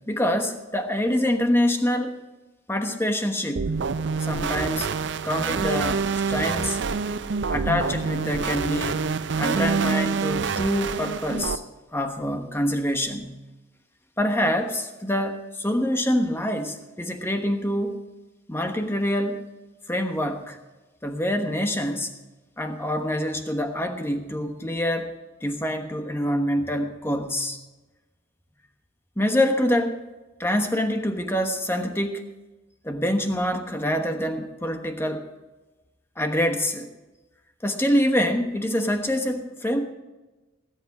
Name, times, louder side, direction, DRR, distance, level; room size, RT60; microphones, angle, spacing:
voice 1, 0.1-2.3 2.7-3.8 4.2-4.9 5.2-6.8 7.5-9.1 9.4-11.6 11.9-13.4 14.2-18.0 18.5-19.4 19.9-20.6 21.0-22.1 22.6-25.1 25.4-27.6 29.2-30.0 30.4-32.2 32.8-35.3 36.2-36.9 37.6-39.8, left 1 dB, 10° left, 5 dB, 1.1 m, -25 dB
sound 1, 3.6-11.6, right 5 dB, 60° right, 0.5 m, -26 dB
18.5 x 8.4 x 5.0 m, 1.1 s
head